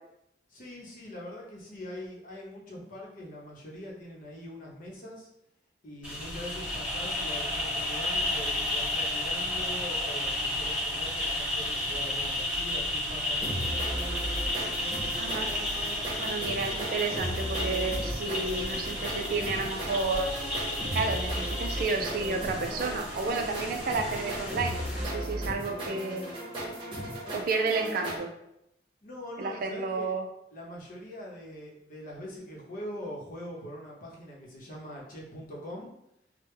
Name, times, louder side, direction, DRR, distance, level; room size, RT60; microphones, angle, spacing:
voice 1, 0.5-5.3 5.8-13.7 29.0-30.1 30.5-35.9, equal, 50° left, -3 dB, 0.8 m, -42 dB
sound 1, 6.0-25.0, left 1 dB, 5° right, 1.3 m, -32 dB
sound 2, 13.4-28.2, right 1 dB, 30° right, 1.1 m, -36 dB
voice 2, 15.2-15.5 16.2-20.3 20.9-26.3 27.3-28.3 29.4-30.2, right 3 dB, 55° right, 5 dB, 0.4 m, -31 dB
3.3 x 2.1 x 3.2 m, 0.83 s
head